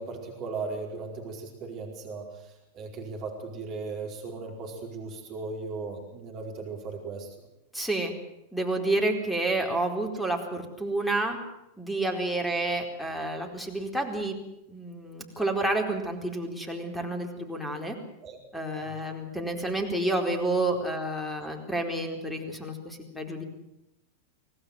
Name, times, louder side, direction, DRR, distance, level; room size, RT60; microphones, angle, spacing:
voice 1, 0.0-7.3 18.2-18.4 18.8-18.9, right 4 dB, 35° right, 1 dB, 4.9 m, -37 dB
voice 2, 7.7-8.1 8.5-11.4 11.8-14.3 14.7-18.0 18.5-23.4, right 2 dB, 5° left, 4 dB, 4.3 m, -29 dB
25.5 x 18.0 x 7.8 m, 0.88 s
figure-of-eight pair, 90°, 0 cm